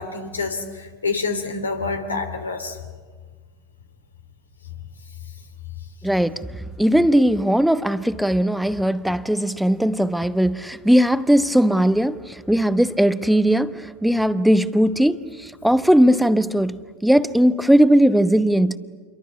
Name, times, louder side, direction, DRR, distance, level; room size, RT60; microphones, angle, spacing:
voice 1, 0.0-2.8, left 4 dB, 85° left, 3.1 m, -27 dB
voice 2, 6.0-6.5 6.8-18.8, equal, ahead, 1.1 m, -18 dB
28.5 x 23.0 x 8.5 m
figure-of-eight pair, 85°, 0 cm